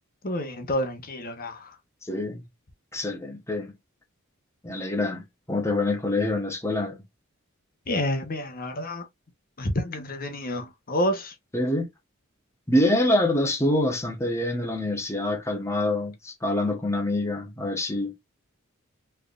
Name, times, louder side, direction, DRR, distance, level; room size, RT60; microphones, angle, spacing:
voice 1, 0.2-1.8 7.9-9.1 9.6-11.3, left 1 dB, 45° left, 1.0 m, -29 dB
voice 2, 2.1-2.4 2.9-3.7 4.6-7.0 11.5-11.9 12.7-18.1, left 1 dB, 15° left, 1.1 m, -26 dB
4.5 x 3.4 x 2.4 m
head